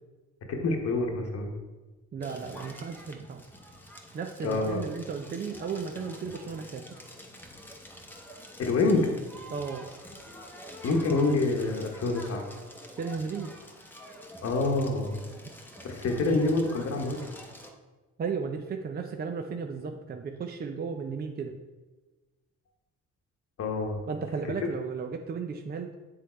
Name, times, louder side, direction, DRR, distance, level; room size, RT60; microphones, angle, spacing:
voice 1, 0.5-1.5 4.4-4.8 8.6-9.1 10.8-12.4 14.4-15.2 15.8-17.2 23.6-24.0, left 3 dB, 55° left, 2 dB, 1.0 m, -26 dB
voice 2, 2.1-3.4 4.1-6.8 9.5-9.9 13.0-13.5 18.2-21.6 24.1-25.9, right 5 dB, 30° right, 4 dB, 0.5 m, -34 dB
Crackle, 2.2-17.7, equal, 5° left, 0.9 m, -47 dB
7.5 x 3.5 x 4.3 m, 1.2 s
cardioid pair, 90°, 30 cm